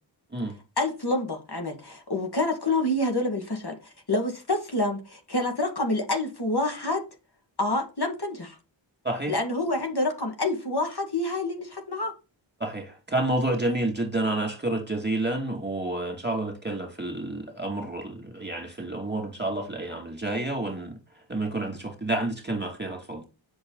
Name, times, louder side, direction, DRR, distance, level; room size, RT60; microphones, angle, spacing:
voice 1, 0.8-7.0 7.6-8.6 9.3-12.1, left 2 dB, 55° left, 1.9 m, -27 dB
voice 2, 12.6-21.0 21.3-23.2, right 2 dB, 20° right, 2.4 m, -29 dB
8.0 x 6.0 x 4.0 m
wide cardioid pair, 45°, 47 cm